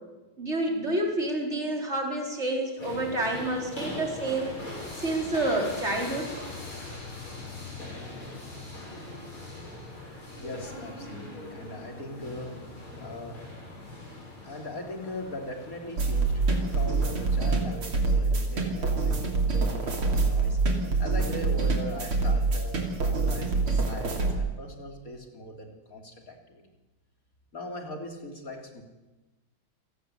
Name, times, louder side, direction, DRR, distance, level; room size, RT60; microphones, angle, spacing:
voice 1, 0.4-4.6 5.0-6.3, right 2 dB, 30° right, 1 dB, 4.8 m, -29 dB
sound 1, 2.8-17.8, left 2 dB, 75° left, 8.5 m, -41 dB
voice 2, 10.4-12.6 13.0-13.3 14.4-20.6 21.0-26.6 27.5-28.8, left 1 dB, 40° left, 3 dB, 3.8 m, -40 dB
sound 2, 16.0-24.3, right 3 dB, 85° right, 4.0 m, -26 dB
28.0 x 17.5 x 8.3 m, 1.1 s
omnidirectional pair, 2.3 m